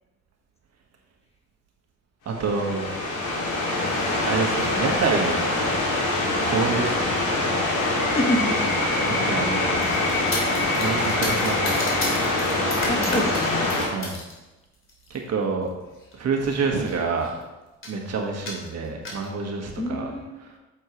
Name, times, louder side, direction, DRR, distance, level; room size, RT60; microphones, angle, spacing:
voice 1, 2.2-2.9 4.2-5.5 6.4-7.1 9.0-10.0 10.8-11.8 13.9-14.2 15.1-15.7 16.2-17.3 17.9-20.1 20.4-20.5, right 4 dB, 60° right, 1 dB, 1.6 m, -27 dB
sound 1, 2.3-13.9, left 2 dB, 90° left, 2.6 m, -24 dB
voice 2, 8.1-8.5 12.6-13.7 19.8-20.3, left 1 dB, 20° left, 0 dB, 1.7 m, -27 dB
sound 2, 9.8-14.3 14.7-15.2 16.0-16.1 16.4-16.5 16.8-17.4 17.8-18.0 18.5-19.3, left 2 dB, 45° left, 2.7 m, -33 dB
8.8 x 7.2 x 3.2 m, 1.1 s
cardioid pair, 90°, 30 cm